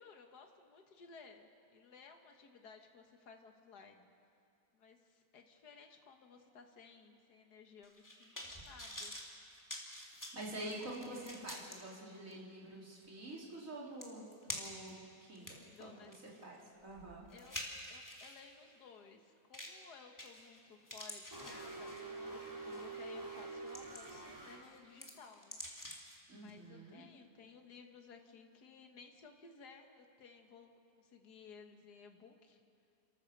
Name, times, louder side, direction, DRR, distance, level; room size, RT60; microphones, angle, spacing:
voice 1, 0.0-4.1 4.7-9.1 15.5-16.7 17.3-17.6 17.9-25.6 26.4-32.6, left 5 dB, 70° left, 4 dB, 2.0 m, -58 dB
sound 1, 7.8-11.8 12.3-12.4 13.6-13.7 14.0-14.9 15.3-18.4 19.5-19.8 20.2-20.6 20.9-22.2 22.7-22.9 23.4-24.3 24.6-26.2 26.5-26.6, equal, 10° left, 2.4 m, -48 dB
voice 2, 10.3-16.1 16.4-17.2 26.3-27.0, right 1 dB, 50° right, -4 dB, 4.2 m, -47 dB
sound 2, 21.3-24.6, right 3 dB, 15° right, 3.7 m, -46 dB
29.0 x 14.0 x 6.7 m, 2.4 s
omnidirectional pair, 1.8 m